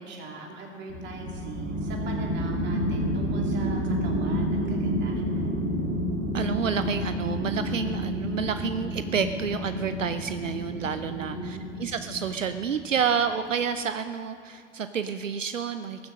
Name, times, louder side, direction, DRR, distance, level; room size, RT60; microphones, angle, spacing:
voice 1, 0.0-5.7 11.2-11.7, right 2 dB, 30° right, 0 dB, 3.0 m, -40 dB
sound 1, 0.9-13.0, equal, 60° right, 3.9 m, -30 dB
voice 2, 6.3-16.1, right 6 dB, 80° right, 10 dB, 0.7 m, -29 dB
21.0 x 7.3 x 6.4 m, 2.4 s
figure-of-eight pair, 95°, 38 cm